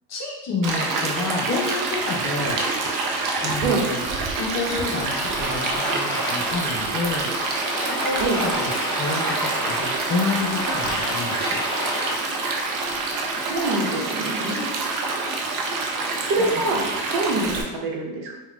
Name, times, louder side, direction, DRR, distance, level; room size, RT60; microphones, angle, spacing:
voice 1, 0.1-2.6 3.4-4.0 4.3-7.3 7.8-8.7 8.9-11.6 14.6-14.7, left 3 dB, 35° left, -2 dB, 0.7 m, -29 dB
Stream, 0.6-17.6, right 3 dB, 45° right, 0.6 m, -27 dB
Domestic sounds home sounds, 4.7-13.6, equal, 10° left, 1.0 m, -31 dB
voice 2, 13.5-14.6 16.3-18.4, right 2 dB, 75° right, -1 dB, 0.9 m, -25 dB
3.7 x 2.3 x 2.3 m, 1.0 s
supercardioid pair, 105°, 49 cm